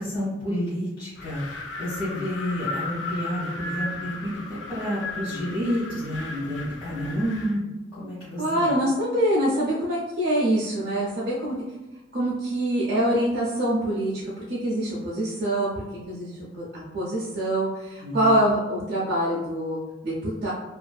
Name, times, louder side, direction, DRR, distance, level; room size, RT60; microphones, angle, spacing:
voice 1, 0.0-7.6 7.9-8.7 18.0-18.3, equal, 25° left, -13 dB, 0.8 m, -30 dB
Wind, 1.2-7.6, left 2 dB, 65° left, 0.4 m, -35 dB
voice 2, 8.4-11.6 12.1-20.5, right 1 dB, 55° right, -7 dB, 0.5 m, -25 dB
2.4 x 2.4 x 2.2 m, 1.1 s
head